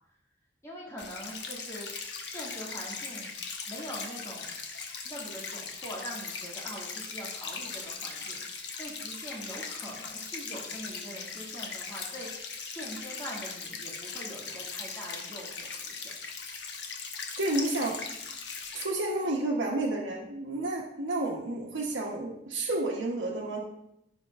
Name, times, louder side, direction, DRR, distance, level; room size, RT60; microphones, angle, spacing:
voice 1, 0.6-4.5 5.0-16.1, equal, 15° left, -5 dB, 1.9 m, -43 dB
sound 1, 1.0-18.8, left 5 dB, 65° left, 1.0 m, -39 dB
voice 2, 17.4-18.0 18.7-23.6, right 2 dB, 90° right, -2 dB, 1.0 m, -31 dB
15.0 x 5.1 x 2.4 m, 0.83 s
head